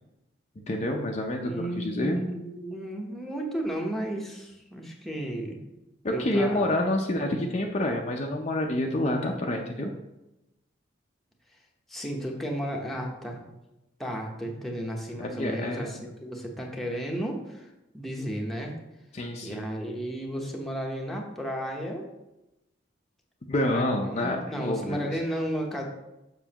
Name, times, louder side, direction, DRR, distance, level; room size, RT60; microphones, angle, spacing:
voice 1, 0.7-2.2 6.0-9.9 15.2-16.0 19.1-19.6 23.5-25.1, left 1 dB, 35° left, 1 dB, 0.5 m, -28 dB
voice 2, 1.4-5.6 6.1-6.6 11.9-13.4 14.0-17.7 17.9-18.7 19.4-22.1 23.7-25.8, equal, ahead, -1 dB, 0.9 m, -33 dB
7.0 x 6.2 x 2.9 m, 0.95 s
head